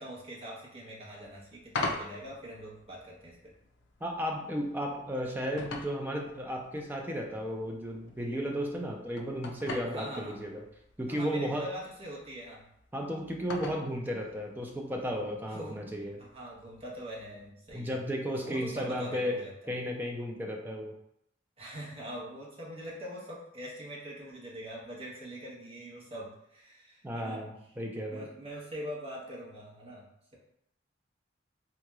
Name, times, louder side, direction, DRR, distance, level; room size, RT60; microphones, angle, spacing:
voice 1, 0.0-3.5 9.8-10.4 11.1-12.7 15.5-15.8 16.2-19.7 21.6-27.7 28.1-30.1, equal, 30° right, -4 dB, 0.9 m, -43 dB
sound 1, 1.2-17.5, left 2 dB, 65° left, 0.4 m, -44 dB
voice 2, 4.0-10.6 11.0-11.6 12.9-16.2 17.7-19.4 19.7-20.9 27.0-27.5 27.8-28.2, equal, 10° right, 1 dB, 0.4 m, -34 dB
3.7 x 2.9 x 2.3 m, 0.76 s
head